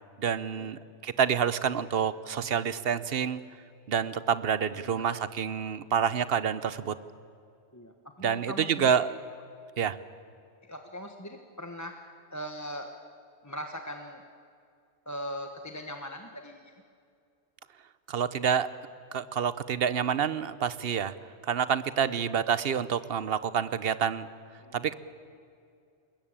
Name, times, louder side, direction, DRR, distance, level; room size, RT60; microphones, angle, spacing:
voice 1, 0.2-3.4 3.9-6.9 8.2-9.1 9.8-10.0 18.1-18.7 19.1-21.1 21.4-24.3 24.7-24.9, right 7 dB, 55° right, 15 dB, 0.9 m, -28 dB
voice 2, 4.7-5.1 7.7-9.0 10.6-12.0 12.3-12.9 13.4-14.2 15.1-16.7 22.0-22.2 24.6-24.9, equal, 15° left, 5 dB, 1.0 m, -40 dB
21.0 x 21.0 x 8.8 m, 2.4 s
omnidirectional pair, 1.2 m